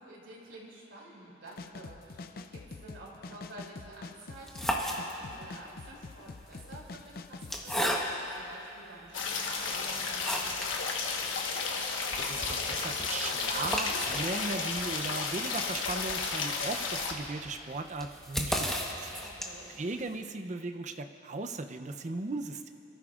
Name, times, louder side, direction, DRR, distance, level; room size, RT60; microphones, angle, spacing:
voice 1, 0.0-11.4 19.2-19.7, right 1 dB, 80° right, -3 dB, 2.9 m, -50 dB
sound 1, 1.5-7.9, left 3 dB, 50° left, 0.4 m, -45 dB
sound 2, 4.3-5.5 6.4-8.4 9.1-9.2 9.6-10.8 11.1-11.2 11.5-11.6 11.9-19.8, equal, ahead, 1.0 m, -36 dB
sound 3, 9.1-17.1, left 4 dB, 85° left, 1.2 m, -33 dB
voice 2, 12.1-19.1 19.8-22.7, right 3 dB, 40° right, 7 dB, 0.5 m, -37 dB
27.0 x 13.5 x 2.4 m, 2.9 s
head